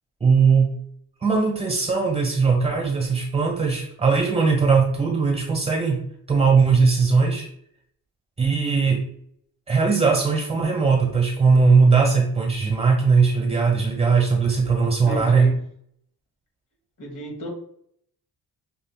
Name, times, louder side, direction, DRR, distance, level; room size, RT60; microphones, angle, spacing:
voice 1, 0.2-0.8 1.2-6.0 6.3-7.5 8.4-9.0 9.7-15.5, right 4 dB, 15° right, 0 dB, 1.4 m, -19 dB
voice 2, 15.0-15.6 17.0-17.5, equal, 50° left, -1 dB, 1.6 m, -33 dB
5.9 x 2.7 x 2.3 m, 0.65 s
cardioid pair, 90°, 38 cm